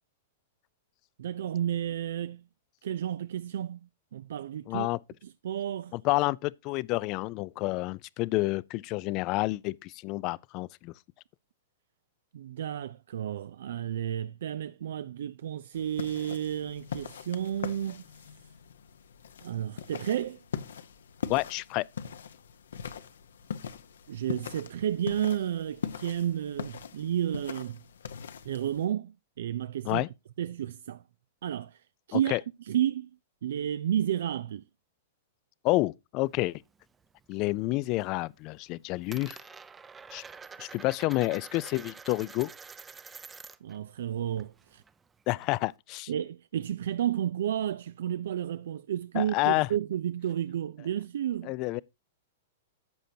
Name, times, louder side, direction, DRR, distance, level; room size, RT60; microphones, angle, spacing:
voice 1, 1.2-2.4 2.8-3.8 4.1-4.9 5.2-5.9 12.3-18.0 19.4-20.4 24.1-27.8 28.4-30.0 30.4-31.0 31.4-31.8 32.1-33.1 33.4-34.6 43.6-44.8 46.1-51.5, right 10 dB, 75° right, 0.4 m, -32 dB
voice 2, 4.7-5.0 5.9-10.9 21.3-21.8 29.9-30.1 32.1-32.4 35.6-36.6 37.3-39.4 40.1-40.2 40.6-42.5 45.3-46.1 49.2-49.7 51.4-51.8, left 21 dB, 40° left, 0.4 m, -29 dB
sound 1, 15.8-28.8, left 7 dB, 85° left, 1.0 m, -41 dB
Coin (dropping), 36.2-37.4 37.7-38.2 38.5-43.8 44.1-45.7, right 5 dB, 15° right, 0.6 m, -48 dB
11.5 x 7.6 x 2.8 m
hypercardioid pair, 125°, 0 cm